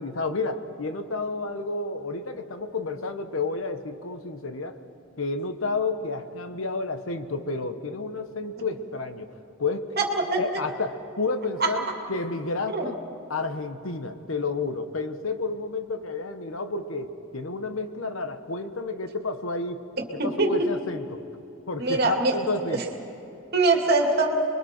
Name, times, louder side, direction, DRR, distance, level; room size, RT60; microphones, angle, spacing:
voice 1, 0.0-4.8 5.2-9.3 9.6-9.9 10.4-13.0 13.3-19.8 20.1-21.2 21.7-22.8, left 3 dB, 85° left, 8 dB, 1.2 m, -31 dB
voice 2, 10.0-10.4 11.6-11.7 12.7-12.9 20.2-20.7 21.8-22.4 22.7-22.8 23.5-24.3, right 3 dB, 50° right, 2 dB, 2.3 m, -23 dB
29.5 x 22.0 x 4.5 m, 2.9 s
head